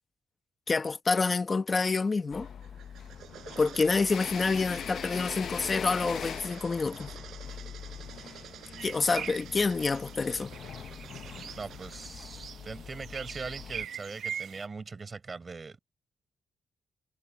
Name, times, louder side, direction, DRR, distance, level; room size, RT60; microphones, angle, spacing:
voice 1, 0.7-2.5 3.6-7.1 8.8-10.5, left 4 dB, 30° left, 1.0 m, -27 dB
sound 1, 2.3-13.9, left 8 dB, 65° left, 0.6 m, -42 dB
sound 2, 2.4-12.1, right 10 dB, 85° right, 4.0 m, -49 dB
sound 3, 8.8-14.7, right 8 dB, 70° right, 1.0 m, -42 dB
voice 2, 11.6-15.8, right 4 dB, 35° right, 4.7 m, -41 dB
cardioid pair, 120°, 0 cm